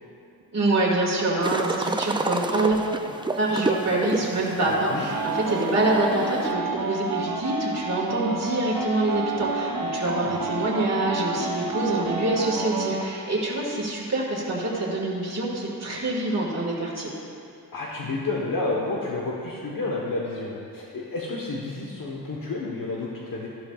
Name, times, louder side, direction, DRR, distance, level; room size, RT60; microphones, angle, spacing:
voice 1, 0.5-2.8 3.4-17.1, right 2 dB, 45° right, -5 dB, 1.9 m, -25 dB
sound 1, 1.4-6.5, right 2 dB, 15° right, 0.3 m, -30 dB
voice 2, 4.6-5.1 10.0-10.3 17.7-23.5, left 2 dB, 60° left, -4 dB, 1.2 m, -30 dB
sound 2, 5.1-13.0, right 4 dB, 70° right, 1.1 m, -29 dB
13.5 x 12.0 x 2.4 m, 2.5 s
wide cardioid pair, 120°, 37 cm